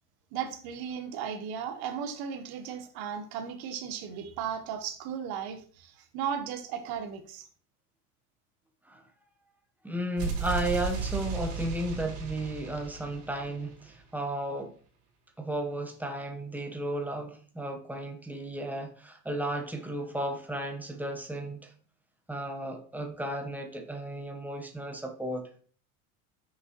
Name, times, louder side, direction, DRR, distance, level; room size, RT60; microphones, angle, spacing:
voice 1, 0.3-7.5, right 8 dB, 60° right, 1.2 m, -36 dB
voice 2, 9.8-14.7 15.4-21.7 22.3-25.5, right 1 dB, 5° right, 1.0 m, -34 dB
sound 1, 10.2-14.0, right 5 dB, 75° right, 3.2 m, -35 dB
6.1 x 5.4 x 3.1 m
supercardioid pair, 100°, 43 cm